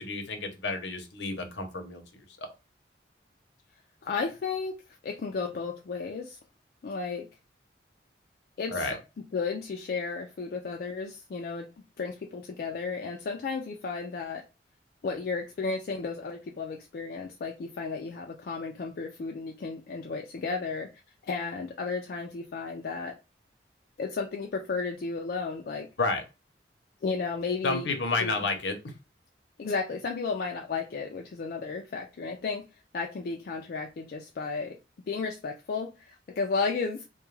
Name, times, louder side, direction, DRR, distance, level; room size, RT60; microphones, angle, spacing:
voice 1, 0.0-2.2 8.7-9.0 26.0-26.2 27.6-28.8, left 3 dB, 75° left, 0.7 m, -30 dB
voice 2, 4.0-6.4 6.8-7.3 8.6-9.0 9.3-11.7 12.0-14.4 15.0-20.9 21.2-23.2 24.0-25.9 27.0-27.9 28.2-28.4 29.6-34.8 35.1-37.0, left 4 dB, 55° left, 0.3 m, -33 dB
2.3 x 2.1 x 3.1 m
head